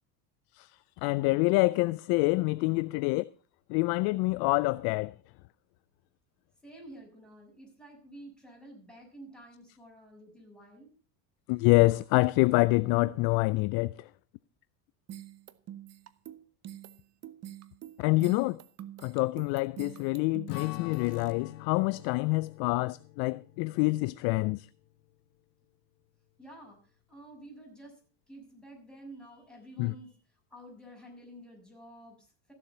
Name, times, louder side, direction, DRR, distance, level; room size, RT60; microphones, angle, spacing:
voice 1, 1.0-3.3 3.7-5.1 11.5-14.1 18.0-18.6 19.0-24.7 29.8-29.9, left 23 dB, 50° left, 0.5 m, -26 dB
voice 2, 6.6-10.9 26.4-26.8 27.1-28.0 28.3-32.5, right 1 dB, ahead, 6.6 m, -50 dB
sound 1, 15.1-21.3, right 11 dB, 30° right, 0.9 m, -46 dB
Strum, 20.5-25.1, left 16 dB, 75° left, 0.9 m, -45 dB
15.0 x 7.2 x 5.6 m
hypercardioid pair, 90°, 49 cm